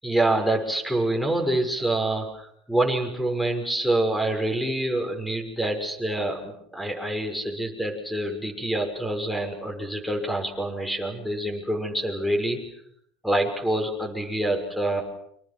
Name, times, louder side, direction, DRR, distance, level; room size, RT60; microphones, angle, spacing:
voice 1, 0.0-12.6 13.2-15.0, right 1 dB, ahead, 7 dB, 6.3 m, -26 dB
29.5 x 25.5 x 6.2 m, 0.69 s
supercardioid pair, 115°, 0 cm